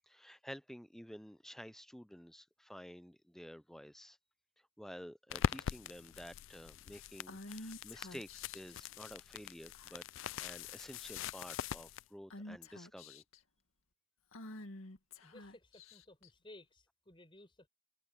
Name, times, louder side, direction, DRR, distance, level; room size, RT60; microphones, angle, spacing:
voice 1, 0.1-4.2 4.8-13.2, equal, ahead, 0.5 m, -51 dB
sound 1, 5.3-12.0, left 8 dB, 65° left, 0.3 m, -42 dB
Female speech woman speaking / Whispering, 7.3-8.7 9.7-10.2 10.6-10.7 11.0-11.6 12.3-13.4 14.3-16.3, left 1 dB, 90° left, 2.0 m, -50 dB
voice 2, 15.2-17.7, left 1 dB, 25° left, 6.3 m, -58 dB
head